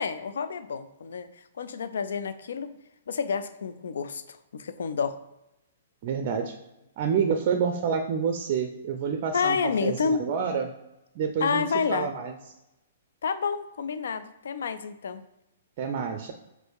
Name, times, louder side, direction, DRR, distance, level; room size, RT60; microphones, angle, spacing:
voice 1, 0.0-2.7 3.1-5.2 9.3-10.3 11.4-12.1 13.2-15.2, left 6 dB, 60° left, 11 dB, 0.4 m, -29 dB
voice 2, 6.0-6.6 7.0-10.7 11.2-11.6 11.9-12.3 15.8-16.3, right 6 dB, 40° right, 6 dB, 0.4 m, -28 dB
5.1 x 2.6 x 3.6 m, 0.93 s
figure-of-eight pair, 115°, 0 cm